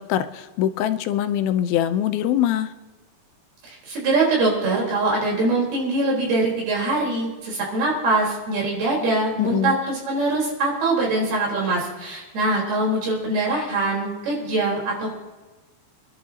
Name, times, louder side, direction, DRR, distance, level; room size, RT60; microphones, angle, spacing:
voice 1, 0.0-2.7 9.4-9.8, left 11 dB, 85° left, 10 dB, 2.6 m, -23 dB
voice 2, 3.6-15.1, right 2 dB, 80° right, -3 dB, 6.0 m, -23 dB
27.0 x 11.0 x 2.9 m, 1.2 s
omnidirectional pair, 4.3 m